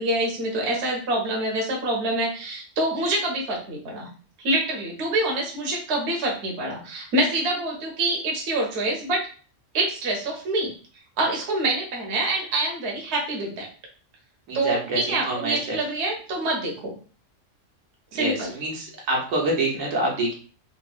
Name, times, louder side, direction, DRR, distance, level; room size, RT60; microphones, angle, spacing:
voice 1, 0.0-4.1 4.4-9.2 9.7-10.7 11.2-13.7 14.5-17.0 18.1-18.5, right 2 dB, 60° right, -1 dB, 1.0 m, -26 dB
voice 2, 14.5-15.8 18.1-20.3, right 1 dB, 80° right, -2 dB, 1.3 m, -26 dB
3.4 x 2.0 x 2.3 m, 0.39 s
omnidirectional pair, 1.4 m